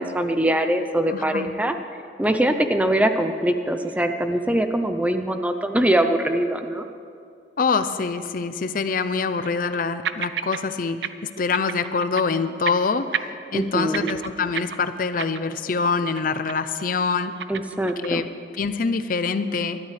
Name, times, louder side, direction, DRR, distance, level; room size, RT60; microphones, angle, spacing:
voice 1, 0.0-1.7 2.2-6.8 13.5-14.1 17.5-18.2, right 1 dB, 10° right, 7 dB, 0.5 m, -22 dB
voice 2, 1.1-1.5 7.6-11.1 11.4-13.0 13.5-17.3 18.0-18.3 18.5-19.8, left 4 dB, 50° left, 11 dB, 0.5 m, -25 dB
sound 1, 3.8-4.0 4.4-4.5 5.1-5.2 8.3-8.4 9.1-9.8 10.0-10.6 10.9-11.1 11.4-12.4 12.7-12.9 13.1-15.7 16.0-16.2 16.5-16.8 17.1-18.2, right 8 dB, 70° right, 0.5 m, -31 dB
21.0 x 12.5 x 3.3 m, 2.4 s
head